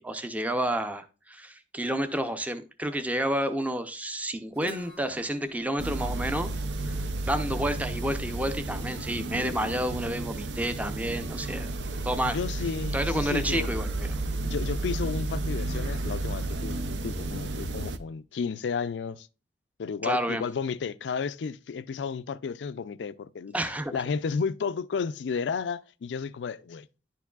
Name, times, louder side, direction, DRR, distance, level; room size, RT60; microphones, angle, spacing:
voice 1, 0.0-6.5 6.8-11.7 12.0-12.4 12.9-14.1 20.0-20.4 23.5-24.0, right 1 dB, 10° right, 0.5 m, -30 dB
Guitar, 4.5-8.3, equal, 60° right, 1.6 m, -48 dB
indoors ambient room tone occasional pipe, 5.8-18.0, right 2 dB, 90° right, 0.6 m, -32 dB
voice 2, 9.3-9.8 12.2-13.7 14.4-16.8 17.0-19.3 19.8-23.6 23.9-26.9, left 5 dB, 80° left, 0.4 m, -32 dB
10.5 x 4.6 x 2.3 m
head